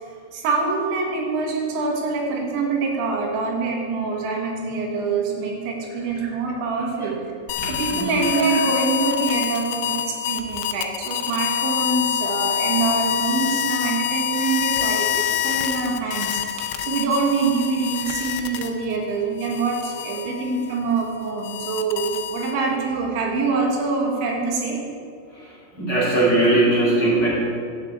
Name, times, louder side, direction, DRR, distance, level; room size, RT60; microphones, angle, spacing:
voice 1, 0.0-7.2 7.7-24.8, right 4 dB, 85° right, 0 dB, 4.1 m, -25 dB
sound 1, 7.5-19.0 19.4-22.8, left 10 dB, 85° left, 2.8 m, -26 dB
voice 2, 7.6-8.3 25.3-27.3, right 2 dB, 30° left, -7 dB, 2.9 m, -20 dB
11.5 x 6.6 x 8.2 m, 2.3 s
omnidirectional pair, 5.1 m